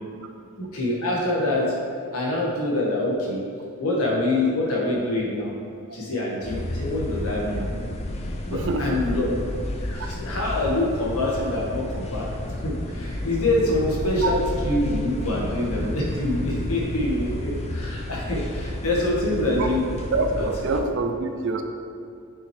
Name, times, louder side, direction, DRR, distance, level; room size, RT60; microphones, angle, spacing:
voice 1, 0.6-1.7 2.1-3.4 3.8-5.5 5.9-7.6 8.4-9.3 9.8-19.8, left 1 dB, 75° left, -4 dB, 1.5 m, -25 dB
sound 1, 6.4-20.8, left 1 dB, 30° left, 0.5 m, -31 dB
voice 2, 8.5-9.0 14.2-14.3 19.3-19.8 20.1-21.6, right 3 dB, 55° right, 5 dB, 0.5 m, -26 dB
6.1 x 6.0 x 3.3 m, 2.6 s
head